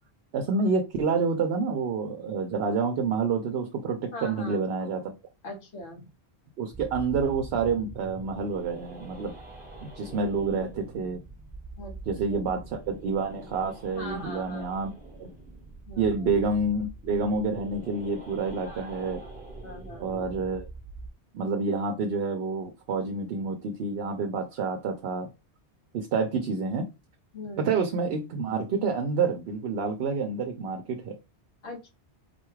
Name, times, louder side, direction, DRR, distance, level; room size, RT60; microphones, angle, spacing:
voice 1, 0.3-5.1 6.6-9.3 9.8-11.2 12.1-14.9 15.2-15.3 16.0-19.2 20.0-20.7 21.3-25.3 25.9-26.9 27.6-31.2, right 4 dB, 70° right, 0.8 m, -28 dB
voice 2, 4.1-4.6 5.4-6.1 11.8-11.9 12.3-12.4 13.9-14.7 15.9-16.3 18.6-18.8 19.2-19.3 19.6-20.2 27.3-27.9 31.6-31.9, left 1 dB, 85° left, 1.3 m, -41 dB
sound 1, 6.7-21.1, right 2 dB, 10° right, 1.0 m, -44 dB
4.0 x 2.3 x 3.1 m
omnidirectional pair, 1.1 m